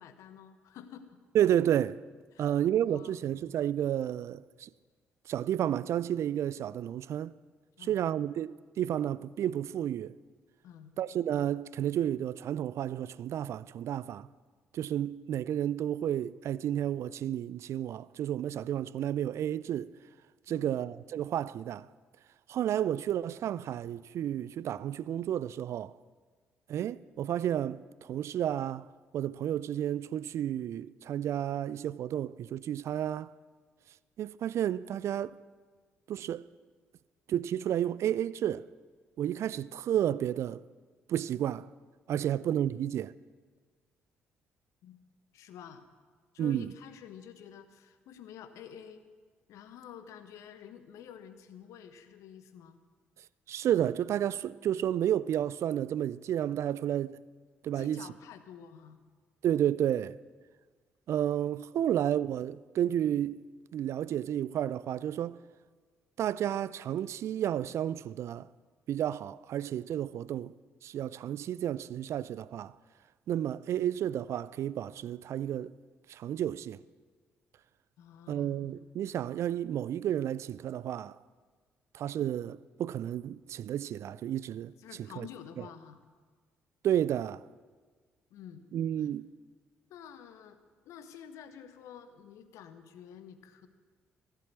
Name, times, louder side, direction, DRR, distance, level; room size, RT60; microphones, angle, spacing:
voice 1, 0.0-1.2 2.3-2.6 2.8-3.2 7.8-8.0 10.6-10.9 20.5-20.7 42.1-42.3 44.8-45.0 45.3-45.9 46.3-49.1 49.5-52.8 57.7-59.0 78.0-78.6 84.8-86.0 88.3-88.7 89.0-89.1 89.9-90.6 90.8-93.7, left 8 dB, 70° left, 1.0 m, -49 dB
voice 2, 1.3-2.0 2.4-4.7 5.3-7.3 7.8-10.2 11.0-14.3 14.7-19.9 20.5-21.9 22.5-25.9 26.7-28.9 29.1-33.3 34.2-35.3 36.1-36.4 37.3-38.6 39.2-40.6 41.1-41.7 42.1-43.1 46.4-46.7 53.5-57.2 57.6-58.0 59.4-60.2 61.1-63.5 63.7-65.4 66.2-68.5 68.9-70.5 70.8-72.7 73.3-75.7 76.1-76.8 78.3-81.2 81.9-84.7 85.2-85.3 86.8-87.4 88.7-89.3, right 10 dB, 55° right, 0.3 m, -31 dB
14.5 x 7.6 x 8.3 m
hypercardioid pair, 45°, 6 cm